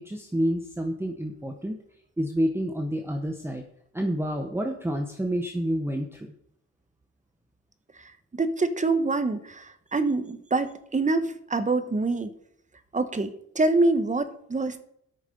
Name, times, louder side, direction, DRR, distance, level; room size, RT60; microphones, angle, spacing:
voice 1, 0.0-1.8 2.2-3.6 3.9-6.3, equal, 5° right, 3 dB, 1.1 m, -28 dB
voice 2, 8.0-12.3 12.9-14.8, right 3 dB, 25° right, 11 dB, 1.1 m, -26 dB
12.5 x 6.4 x 5.3 m, 0.71 s
cardioid pair, 95°, 31 cm